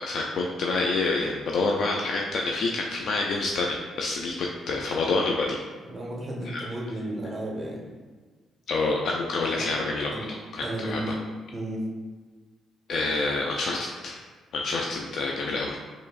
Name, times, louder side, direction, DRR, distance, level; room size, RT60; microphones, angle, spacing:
voice 1, 0.0-5.6 6.5-6.6 8.7-10.2 10.5-11.1 12.9-14.2 14.5-15.8, left 3 dB, 65° left, 0 dB, 0.3 m, -27 dB
voice 2, 5.9-7.8 9.5-9.7 10.1-10.3 10.6-11.1 11.5-11.8, right 1 dB, 25° right, -4 dB, 1.2 m, -33 dB
4.6 x 3.0 x 2.4 m, 1.4 s
cardioid pair, 90°, 0 cm